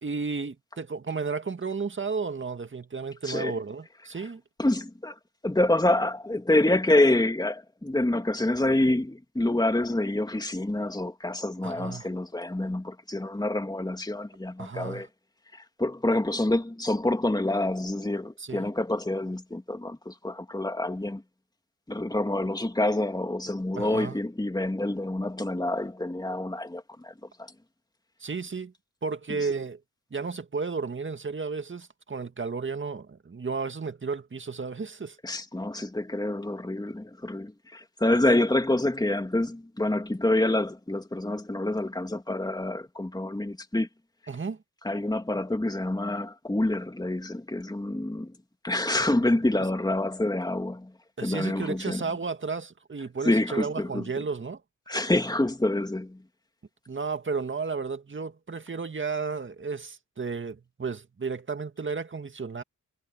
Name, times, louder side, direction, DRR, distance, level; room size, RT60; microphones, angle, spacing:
voice 1, 0.0-4.4 11.6-12.1 14.6-15.1 18.4-18.7 23.8-24.2 28.2-28.7 29.0-29.8 30.1-35.2 44.3-44.6 51.2-54.6 56.9-62.6, right 4 dB, 40° right, 2.0 m, -33 dB
voice 2, 3.2-3.5 4.6-5.1 5.4-15.1 15.5-21.2 21.9-27.1 35.2-43.9 44.8-48.3 48.6-50.9 51.2-52.0 53.2-54.1 54.9-56.2, left 1 dB, 15° left, 2.9 m, -27 dB
cardioid pair, 60°, 31 cm